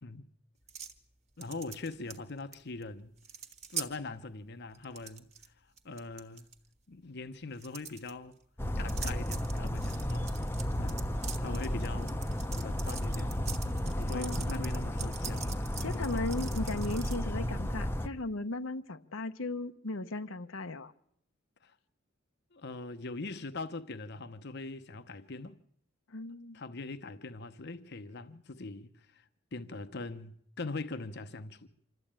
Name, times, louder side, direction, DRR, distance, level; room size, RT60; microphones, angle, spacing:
sound 1, 0.7-1.0 1.4-2.5 2.8-2.9 3.2-3.9 4.7-5.5 5.8-6.5 7.5-8.1 8.9-17.2, right 6 dB, 35° right, 1.5 m, -43 dB
voice 1, 1.4-3.1 3.7-6.5 6.9-8.3 8.8-10.4 10.8-11.0 11.4-13.4 13.8-16.1 21.6-21.8 22.5-25.6 26.5-31.7, left 3 dB, 55° left, 0.9 m, -42 dB
Bird vocalization bird call bird song, 8.6-18.1, equal, 10° left, 0.8 m, -33 dB
voice 2, 14.1-14.6 15.8-20.9 26.1-26.6, left 2 dB, 80° left, 1.0 m, -37 dB
25.5 x 13.5 x 8.8 m
head